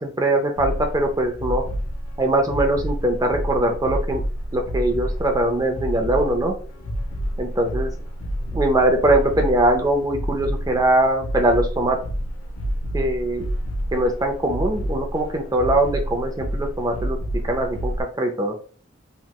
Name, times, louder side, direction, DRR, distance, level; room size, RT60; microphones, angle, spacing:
voice 1, 0.0-1.6 2.2-4.2 4.5-6.5 7.4-7.9 8.5-12.0 12.9-13.4 13.9-17.2 17.5-18.5, right 1 dB, 20° right, 4 dB, 0.5 m, -21 dB
sound 1, 0.6-18.0, equal, 80° left, 0.6 m, -29 dB
3.2 x 2.9 x 2.3 m, 0.42 s
head